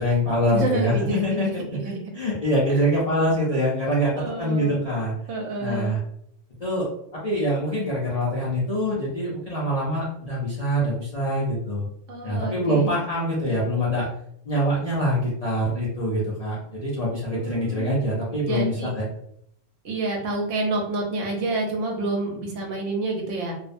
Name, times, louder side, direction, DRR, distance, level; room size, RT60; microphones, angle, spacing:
voice 1, 0.0-1.8 2.1-5.1 5.6-6.0 6.6-11.9 12.2-14.1 14.4-19.1, equal, 60° left, -6 dB, 0.4 m, -24 dB
voice 2, 0.5-1.5 1.8-2.0 2.7-2.8 4.2-4.8 5.3-6.0 12.1-13.0 17.3-18.9 19.8-23.5, right 2 dB, 75° right, 0 dB, 1.0 m, -28 dB
2.5 x 2.0 x 2.5 m, 0.72 s
omnidirectional pair, 1.3 m